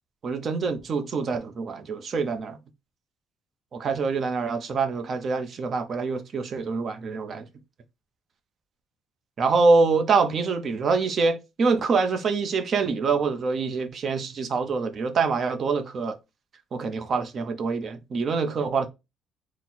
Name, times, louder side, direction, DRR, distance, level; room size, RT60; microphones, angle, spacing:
voice 1, 0.2-2.6 3.7-7.5 9.4-16.2 16.7-18.9, right 4 dB, 35° right, 0.6 m, -25 dB
4.0 x 2.0 x 4.3 m
cardioid pair, 150°, 0 cm